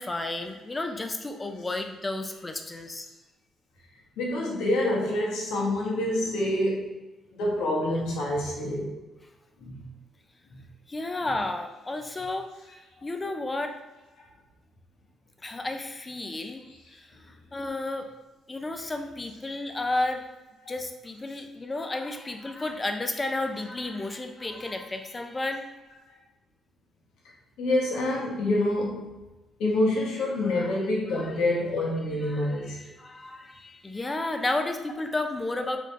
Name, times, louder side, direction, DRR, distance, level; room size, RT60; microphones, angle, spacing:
voice 1, 0.0-3.1 10.9-12.5 13.0-13.8 15.4-16.6 16.9-17.1 17.5-18.1 18.5-20.2 20.7-25.7 30.6-30.7 31.1-31.4 32.2-35.8, left 2 dB, 20° left, 6 dB, 0.5 m, -32 dB
voice 2, 4.2-6.9 7.3-8.9 9.6-9.8 20.6-20.7 27.6-29.1 29.6-32.8, left 1 dB, 90° left, -3 dB, 1.2 m, -27 dB
3.9 x 3.3 x 3.2 m, 1.1 s
cardioid pair, 90°, 0 cm